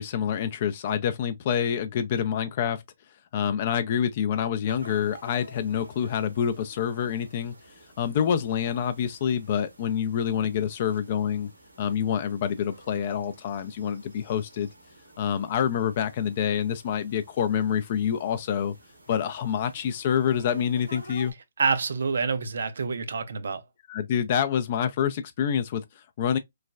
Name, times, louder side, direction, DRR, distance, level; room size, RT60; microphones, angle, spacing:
voice 1, 0.0-2.8 3.3-7.5 8.0-11.5 11.8-14.7 15.2-18.7 19.1-21.3 23.9-26.4, left 8 dB, 40° left, 0.3 m, -27 dB
sound 1, 4.7-21.3, right 1 dB, 85° right, 1.1 m, -51 dB
voice 2, 21.6-23.6, right 5 dB, 65° right, 0.4 m, -27 dB
3.1 x 2.1 x 2.3 m
figure-of-eight pair, 140°, 0 cm